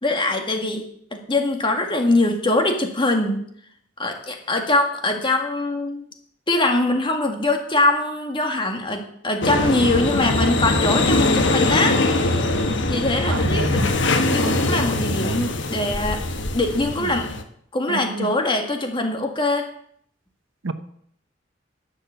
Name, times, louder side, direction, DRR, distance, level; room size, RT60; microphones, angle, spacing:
voice 1, 0.0-3.4 4.0-6.1 6.5-12.4 12.9-13.8 14.1-16.2 16.5-17.3 17.7-19.7, left 2 dB, 25° left, 4 dB, 1.9 m, -23 dB
sound 1, 9.4-17.4, left 2 dB, 70° left, 1.3 m, -22 dB
voice 2, 13.3-14.0 14.3-14.7 17.9-18.3 20.6-20.7, right 3 dB, 90° right, 10 dB, 0.9 m, -30 dB
11.0 x 7.7 x 7.0 m, 0.67 s
head